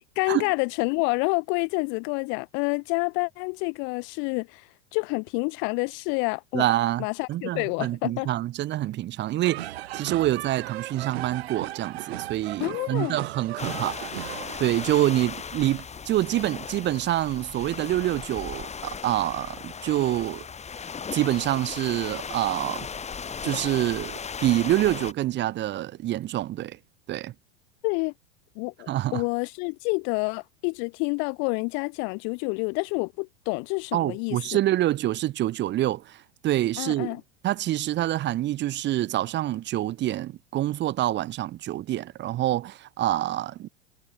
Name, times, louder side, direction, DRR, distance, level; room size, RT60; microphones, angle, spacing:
voice 1, 0.2-6.7 7.0-8.3 12.6-13.2 27.8-28.1 28.6-34.4 36.8-37.2, left 36 dB, 35° left, 0.4 m, -28 dB
voice 2, 6.5-14.0 14.6-20.4 21.1-22.9 23.4-26.8 27.1-27.3 28.9-29.2 33.9-37.2 37.4-43.7, right 14 dB, 30° right, 1.1 m, -26 dB
sound 1, 9.4-15.1, right 15 dB, 65° right, 1.5 m, -37 dB
sound 2, 13.6-25.1, left 6 dB, 20° left, 2.9 m, -37 dB
figure-of-eight pair, 85°, 34 cm